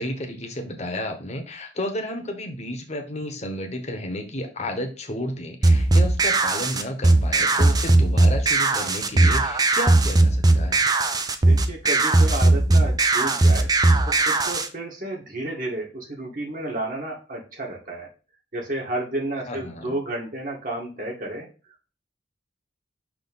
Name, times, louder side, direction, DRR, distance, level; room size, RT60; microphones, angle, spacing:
voice 1, 0.0-10.8 19.5-20.0, left 1 dB, 35° left, 5 dB, 1.1 m, -32 dB
sound 1, 5.6-14.7, right 2 dB, 20° right, 0.5 m, -18 dB
voice 2, 11.4-13.7 14.0-18.1 18.5-21.5, right 1 dB, 45° right, -1 dB, 2.0 m, -31 dB
6.1 x 3.1 x 5.4 m, 0.33 s
head